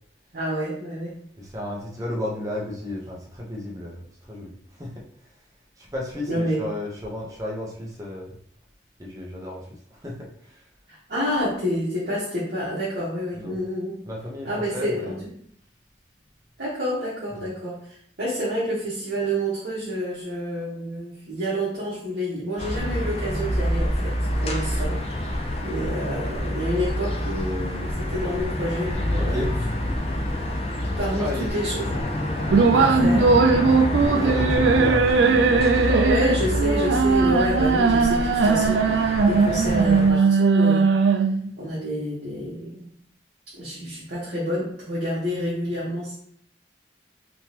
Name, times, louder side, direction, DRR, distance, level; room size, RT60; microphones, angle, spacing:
voice 1, 0.3-1.2 6.3-6.6 10.9-13.9 14.4-15.2 16.6-25.0 25.6-29.5 31.0-32.2 32.7-33.4 34.1-34.3 36.1-40.9 41.6-42.9 43.5-46.2, equal, 60° right, -9 dB, 1.1 m, -28 dB
voice 2, 1.4-5.0 5.8-8.4 9.0-10.6 13.3-13.6 14.0-15.3 17.3-17.5 29.2-29.5 31.2-31.6 34.0-36.1 36.4-36.5, left 1 dB, 20° right, -3 dB, 0.8 m, -33 dB
sound 1, 22.6-40.1, left 1 dB, 30° left, 0.4 m, -27 dB
sound 2, 32.5-41.5, right 4 dB, 75° right, 0.4 m, -19 dB
3.5 x 2.9 x 2.9 m, 0.62 s
head